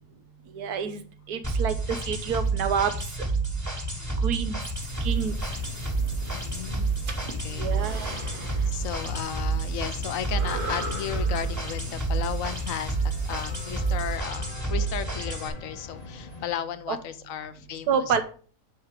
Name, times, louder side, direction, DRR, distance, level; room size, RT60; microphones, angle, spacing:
voice 1, 0.5-1.0 1.3-1.7 2.1-2.9 4.2-4.6 5.0-5.3 7.5-8.1 16.9-17.0 17.9-18.2, right 7 dB, 75° right, 9 dB, 1.4 m, -27 dB
sound 1, 1.4-15.5, right 3 dB, 10° right, 1.2 m, -29 dB
voice 2, 3.8-4.4 6.3-6.9 7.2-8.1 8.7-18.2, left 9 dB, 65° left, 12 dB, 0.9 m, -35 dB
sound 2, 4.7-14.2, right 1 dB, 35° right, 1.4 m, -41 dB
sound 3, 4.8-16.5, left 3 dB, 35° left, 0.7 m, -42 dB
9.2 x 3.6 x 4.8 m, 0.41 s
omnidirectional pair, 1.7 m